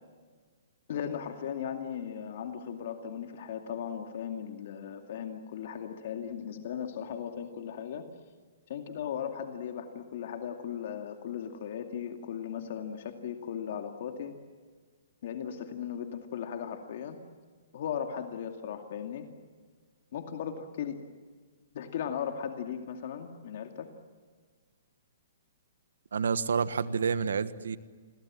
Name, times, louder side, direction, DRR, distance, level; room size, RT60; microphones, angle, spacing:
voice 1, 0.9-8.0 8.7-14.4 15.2-17.2 17.7-19.3 20.1-21.0 21.7-23.9, left 8 dB, 55° left, 4 dB, 2.4 m, -37 dB
voice 2, 26.1-27.8, right 6 dB, 85° right, 13 dB, 1.4 m, -29 dB
30.0 x 23.0 x 7.6 m, 1.5 s
hypercardioid pair, 155°, 0 cm